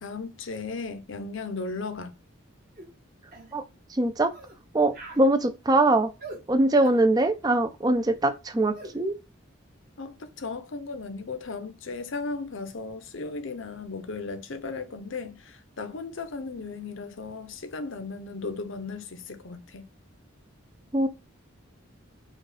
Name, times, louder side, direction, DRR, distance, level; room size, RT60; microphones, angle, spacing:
voice 1, 0.0-2.1 10.0-19.9, left 4 dB, 65° left, 0.7 m, -36 dB
sound 1, 2.8-2.9 3.3-3.5 4.3-4.6 4.9-5.3 6.2-6.4 6.8-7.1 8.7-9.0, right 2 dB, 45° right, 1.3 m, -42 dB
voice 2, 3.9-4.3 4.7-6.1 6.5-9.1 20.9-21.1, right 2 dB, 20° right, 0.4 m, -22 dB
4.9 x 2.4 x 4.1 m
head